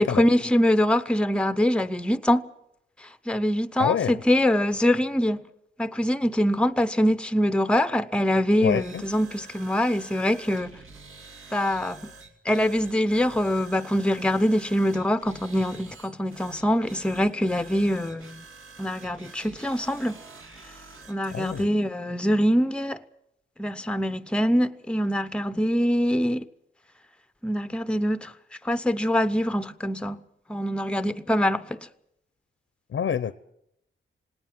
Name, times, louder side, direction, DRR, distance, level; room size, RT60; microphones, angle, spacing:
voice 1, 0.0-2.4 3.3-5.4 5.8-10.7 11.5-12.1 12.4-18.4 18.8-20.2 21.1-23.0 23.6-26.5 27.4-28.3 28.6-30.2 30.5-31.8, equal, 5° left, 0.7 m, -24 dB
voice 2, 3.8-4.1 8.6-9.0 21.3-21.7 32.9-33.3, left 8 dB, 70° left, 0.8 m, -26 dB
sound 1, 8.7-21.7, right 4 dB, 75° right, 2.6 m, -48 dB
18.5 x 18.5 x 9.0 m
wide cardioid pair, 135°, 21 cm